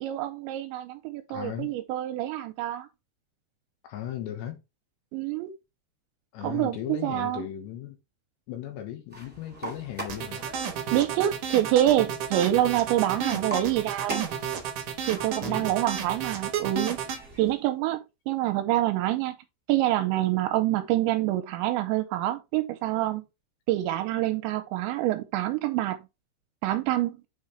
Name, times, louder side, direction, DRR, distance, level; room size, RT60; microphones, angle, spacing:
voice 1, 0.0-2.9 5.1-5.5 6.4-7.5 10.9-14.3 15.1-17.0 17.4-19.4 19.7-23.2 23.7-26.0 26.6-27.2, right 14 dB, 85° right, 2.8 m, -26 dB
voice 2, 1.3-1.7 3.8-4.6 6.3-8.0 8.5-10.4 13.3-13.7 15.4-15.8, left 11 dB, 75° left, 3.3 m, -37 dB
sound 1, 9.1-17.5, right 2 dB, 5° right, 0.9 m, -43 dB
sound 2, 10.1-17.2, right 7 dB, 65° right, 2.2 m, -32 dB
7.6 x 4.8 x 3.3 m
omnidirectional pair, 5.3 m